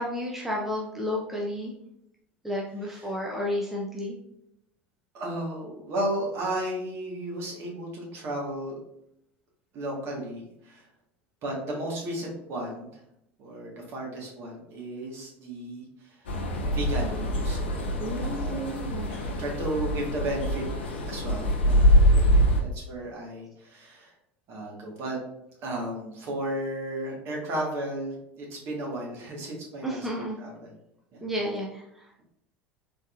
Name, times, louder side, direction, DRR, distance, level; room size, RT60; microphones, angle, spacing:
voice 1, 0.0-1.7 2.4-4.1 18.0-19.4 29.8-30.4 31.2-32.2, equal, 5° right, -3 dB, 0.7 m, -32 dB
voice 2, 5.1-8.8 9.7-10.8 11.4-12.9 13.4-16.2 16.7-18.8 19.1-20.6 21.1-22.2 22.6-24.1 24.5-25.2 25.6-30.7 31.1-31.2, right 1 dB, 45° right, -2 dB, 1.5 m, -34 dB
sound 1, 16.3-22.6, equal, 75° left, 0.6 m, -24 dB
3.9 x 3.6 x 2.5 m, 0.78 s
figure-of-eight pair, 75°, 6 cm